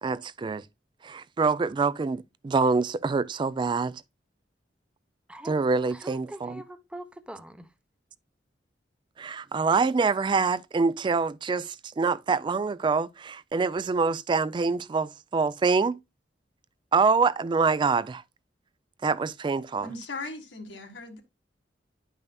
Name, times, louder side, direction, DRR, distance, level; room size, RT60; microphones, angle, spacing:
voice 1, 0.0-0.6 1.0-3.9 5.5-6.6 9.2-15.9 16.9-18.2 19.0-19.9, right 4 dB, 25° right, 0.3 m, -25 dB
voice 2, 5.3-5.6 5.9-7.7, right 1 dB, 5° right, 0.7 m, -43 dB
voice 3, 19.8-21.2, left 2 dB, 90° left, 1.7 m, -38 dB
10.5 x 5.5 x 2.2 m
head